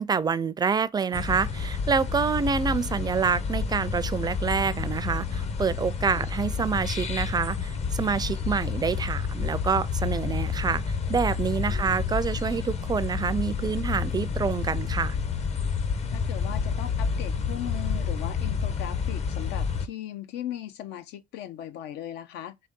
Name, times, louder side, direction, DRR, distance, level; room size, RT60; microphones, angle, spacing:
voice 1, 0.0-15.2, right 5 dB, 25° right, 0.4 m, -27 dB
sound 1, 1.1-19.9, left 5 dB, 40° left, 0.7 m, -29 dB
voice 2, 16.1-22.6, left 11 dB, 85° left, 0.6 m, -38 dB
3.9 x 3.2 x 3.6 m
cardioid pair, 110°, 17 cm